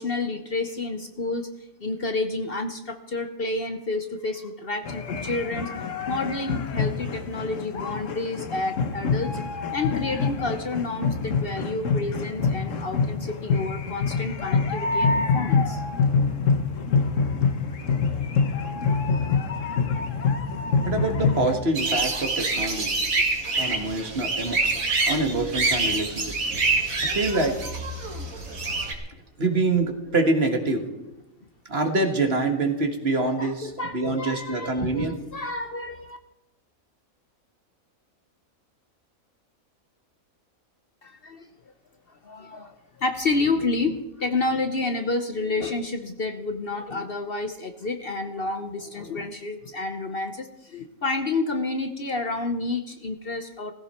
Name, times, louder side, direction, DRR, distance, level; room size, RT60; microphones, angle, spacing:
voice 1, 0.0-1.5 1.8-5.7 6.1-9.4 9.7-15.8 33.2-36.2 41.0-41.5 42.2-53.7, left 3 dB, 50° left, 7 dB, 1.0 m, -30 dB
sound 1, 4.9-21.6, left 4 dB, 65° left, 1.4 m, -26 dB
voice 2, 20.8-23.0 23.6-24.6 25.0-26.4 27.0-27.6 29.4-30.9 31.7-35.1, right 2 dB, 45° right, 5 dB, 1.9 m, -25 dB
sound 2, 21.7-28.9, right 3 dB, 75° right, 2.5 m, -26 dB
17.5 x 15.5 x 4.4 m, 0.93 s
omnidirectional pair, 1.5 m